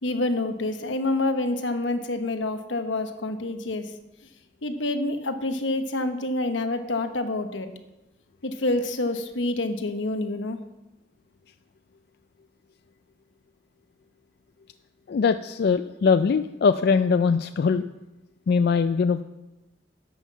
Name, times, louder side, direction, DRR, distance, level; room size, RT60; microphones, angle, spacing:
voice 1, 0.0-3.9 4.6-7.7 8.4-10.6, left 2 dB, 85° left, 8 dB, 1.0 m, -27 dB
voice 2, 15.1-17.8 18.5-19.2, left 5 dB, 60° left, 10 dB, 0.3 m, -21 dB
11.5 x 5.7 x 7.3 m, 1.0 s
head